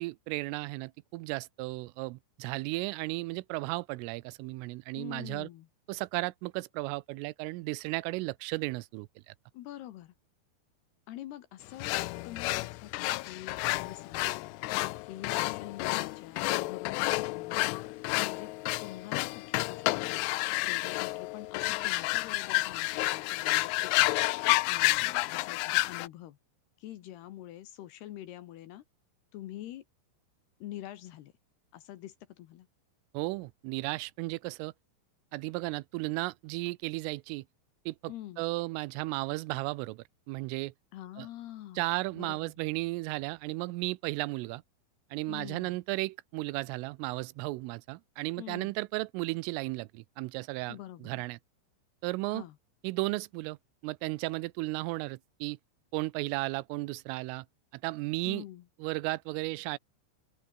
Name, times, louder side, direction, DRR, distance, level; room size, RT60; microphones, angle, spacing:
voice 1, 0.0-5.5 5.9-9.3 33.1-34.7 35.3-37.4 37.9-38.1 38.4-40.7 41.2-41.3 41.8-44.6 45.1-50.8 51.0-51.4 52.0-52.4 52.8-53.6 53.8-55.6 55.9-57.5 57.7-58.4 58.8-59.8, right 22 dB, 90° right, 3.3 m, -34 dB
voice 2, 5.0-5.7 9.5-10.1 11.1-14.5 15.1-18.5 18.8-20.2 20.6-23.9 24.6-26.4 26.8-28.8 29.3-29.8 30.6-31.3 31.7-32.7 38.1-38.4 40.9-41.9 42.1-42.5 45.3-45.8 48.4-48.7 50.7-51.2 52.3-52.6 58.3-58.7, left 13 dB, 70° left, 2.8 m, -46 dB
sound 1, 11.8-26.1, left 21 dB, 90° left, 3.2 m, -30 dB
open air
omnidirectional pair, 5.6 m